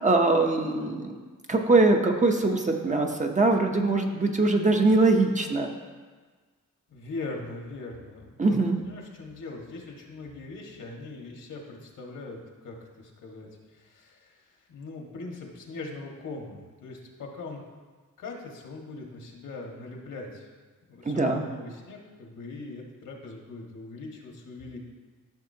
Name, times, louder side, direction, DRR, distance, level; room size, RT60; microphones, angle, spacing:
voice 1, 0.0-1.2 1.5-5.7 8.4-8.8 21.0-21.4, right 3 dB, 25° right, 3 dB, 0.8 m, -22 dB
voice 2, 6.9-12.4 12.6-17.6 18.2-20.5 20.9-24.8, left 3 dB, 75° left, 0 dB, 1.7 m, -41 dB
14.0 x 6.2 x 2.8 m, 1.4 s
wide cardioid pair, 125°, 32 cm